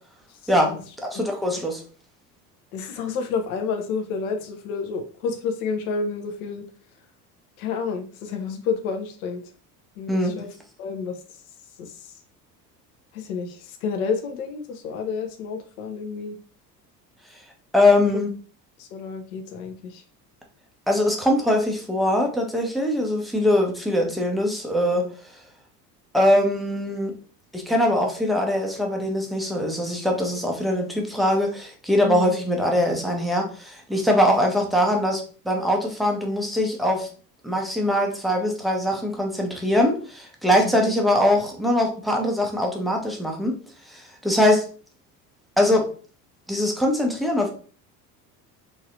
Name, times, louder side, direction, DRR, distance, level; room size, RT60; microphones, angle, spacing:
voice 1, 0.4-0.8 1.1-1.2 2.7-6.6 7.6-9.4 10.0-10.5 10.8-11.2 11.8-12.1 13.1-16.4 18.1-18.2 18.8-20.0 32.0-32.4 40.6-40.9, left 5 dB, 60° left, 5 dB, 0.6 m, -30 dB
voice 2, 1.0-1.8 10.1-10.4 17.7-18.3 20.9-25.1 26.1-27.1 27.5-37.1 37.4-43.5 43.9-44.6 45.6-45.9 46.5-47.5, left 1 dB, ahead, 1 dB, 0.4 m, -22 dB
3.0 x 2.7 x 2.6 m, 0.40 s
figure-of-eight pair, 65°, 50 cm